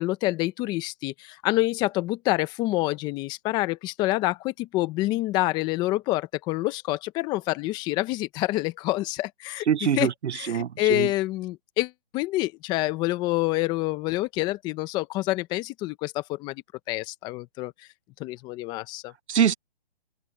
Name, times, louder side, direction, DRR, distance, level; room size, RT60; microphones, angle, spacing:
voice 1, 0.0-10.1 10.3-17.7 18.2-19.1, left 18 dB, 15° left, 0.9 m, -27 dB
voice 2, 9.7-11.1 19.3-19.5, right 8 dB, 90° right, 0.7 m, -24 dB
open air
hypercardioid pair, 155°, 33 cm